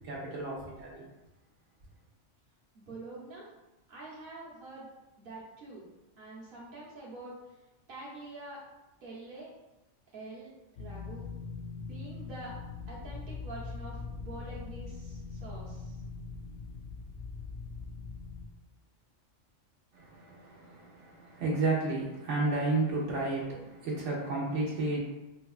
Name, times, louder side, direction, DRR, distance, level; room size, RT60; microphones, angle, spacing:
voice 1, 0.0-1.0 19.9-25.0, right 3 dB, 80° right, -4 dB, 1.1 m, -32 dB
voice 2, 2.7-3.5 3.9-4.9 5.2-5.8 6.2-7.3 7.9-8.6 9.0-9.5 10.1-10.5 10.8-11.3 11.9-12.5 12.9-15.9, right 2 dB, 50° right, -6 dB, 1.0 m, -46 dB
sound 1, 10.8-18.5, left 4 dB, 70° left, 0.9 m, -42 dB
4.5 x 2.3 x 2.4 m, 1.0 s
omnidirectional pair, 1.2 m